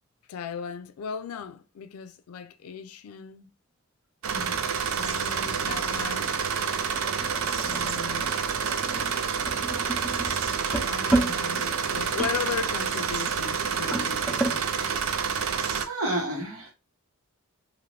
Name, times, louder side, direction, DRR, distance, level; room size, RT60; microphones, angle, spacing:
voice 1, 0.3-3.5 4.8-6.3 7.6-8.3 10.8-15.0, left 6 dB, 90° left, 0.4 m, -37 dB
sound 1, 4.2-15.9, right 6 dB, 70° right, 0.4 m, -28 dB
sound 2, 5.3-14.6, right 2 dB, 5° left, 0.5 m, -33 dB
voice 2, 15.6-16.7, right 1 dB, 90° right, 1.3 m, -32 dB
2.6 x 2.6 x 3.2 m
head